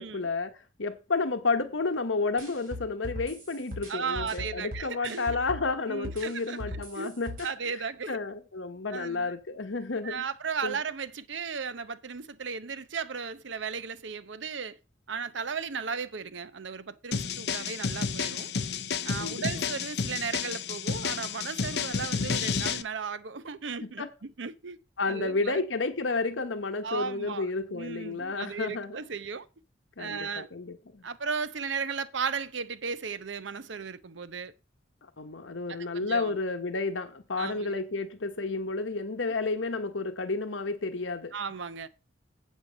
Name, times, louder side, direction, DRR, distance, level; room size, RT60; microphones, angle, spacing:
voice 1, 0.0-7.4 8.1-10.2 10.6-10.8 19.2-19.6 23.8-24.1 25.0-29.0 30.0-31.0 35.2-41.3, left 3 dB, 90° left, 1.1 m, -31 dB
sound 1, 2.4-5.7 6.0-7.5, left 1 dB, 50° right, 4.2 m, -39 dB
voice 2, 3.9-5.4 5.9-7.2 7.4-8.2 8.9-9.3 10.0-14.8 15.1-18.5 19.0-24.8 25.1-25.6 26.8-29.5 30.0-30.5 31.0-34.5 35.7-36.4 37.4-37.8 41.3-41.9, right 5 dB, 80° right, 0.7 m, -35 dB
sound 2, 17.1-22.8, left 5 dB, 60° left, 0.7 m, -31 dB
8.3 x 7.4 x 5.1 m
head